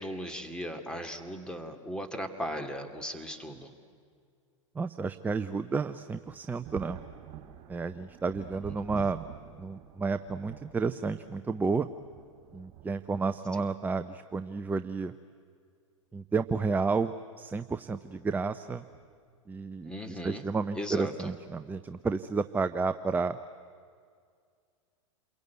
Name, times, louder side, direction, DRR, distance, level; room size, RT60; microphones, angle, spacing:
voice 1, 0.0-3.7 19.8-20.4 20.7-21.3, equal, 5° left, 5 dB, 2.5 m, -37 dB
voice 2, 4.8-7.0 7.7-9.2 9.6-11.9 12.5-15.1 16.1-18.8 19.5-23.4, right 4 dB, 10° right, 11 dB, 0.6 m, -31 dB
Thunder, 6.6-13.7 14.7-14.8 16.2-16.5 16.9-17.0 18.9-19.1 19.8-20.2, right 12 dB, 40° right, 3.6 m, -49 dB
28.0 x 22.5 x 9.4 m, 2.2 s
hypercardioid pair, 100°, 17 cm